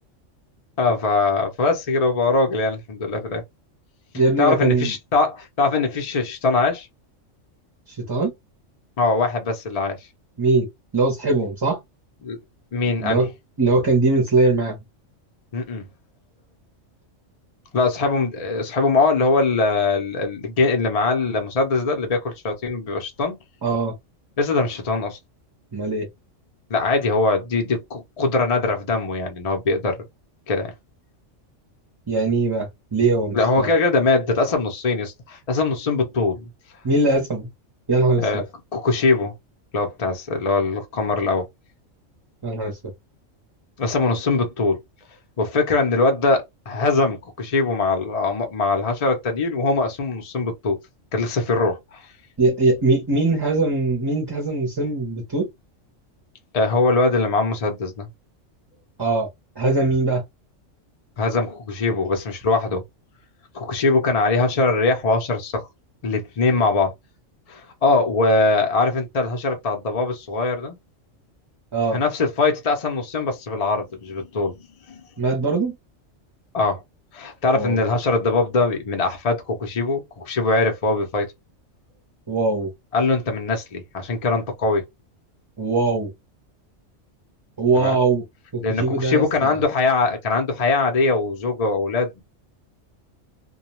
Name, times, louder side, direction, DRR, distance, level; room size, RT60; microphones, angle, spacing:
voice 1, 0.8-3.4 4.4-6.9 9.0-10.0 12.2-12.4 12.7-13.2 15.5-15.9 17.7-23.4 24.4-25.2 26.7-30.0 30.5-30.7 33.3-36.5 38.2-38.4 38.7-39.3 39.7-41.5 43.8-44.8 45.4-50.8 51.1-52.1 56.5-58.1 61.2-62.8 63.5-65.7 66.0-66.9 67.5-70.8 71.9-74.6 74.9-75.0 76.5-76.8 77.1-81.3 82.9-84.8 87.7-88.0 88.6-92.2, left 3 dB, 40° left, 0.6 m, -22 dB
voice 2, 4.1-4.9 7.9-8.3 10.4-10.7 10.9-11.8 13.0-13.3 13.6-14.8 23.6-23.9 25.7-26.1 32.1-33.7 36.8-37.5 37.9-38.4 42.4-42.8 52.4-55.5 59.0-59.3 59.6-60.2 71.7-72.0 75.2-75.7 77.6-77.8 82.3-82.7 85.6-86.1 87.6-88.2 88.5-89.6, right 3 dB, 25° right, 0.6 m, -21 dB
2.3 x 2.2 x 2.9 m
omnidirectional pair, 1.3 m